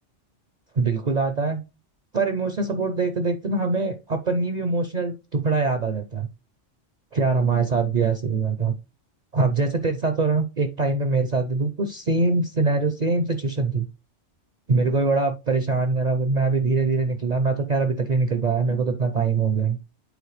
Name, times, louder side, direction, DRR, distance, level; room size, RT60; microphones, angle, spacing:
voice 1, 0.7-1.6 2.1-6.3 7.1-8.7 9.3-13.9 14.7-19.8, right 3 dB, 45° right, 7 dB, 0.7 m, -23 dB
8.2 x 4.3 x 3.2 m, 0.28 s
omnidirectional pair, 1.2 m